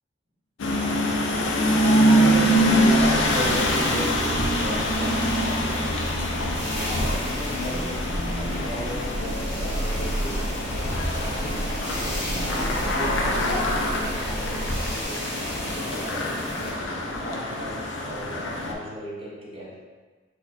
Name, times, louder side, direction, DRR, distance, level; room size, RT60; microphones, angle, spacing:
sound 1, 0.6-18.7, equal, 90° left, 0.5 m, -25 dB
voice 1, 1.6-11.5 12.0-16.5 17.2-19.8, equal, 30° right, -5 dB, 0.7 m, -36 dB
sound 2, 2.5-15.1, right 1 dB, 75° right, 0.4 m, -34 dB
sound 3, 3.2-16.7, equal, 30° left, 1.2 m, -35 dB
4.0 x 2.4 x 2.7 m, 1.4 s
head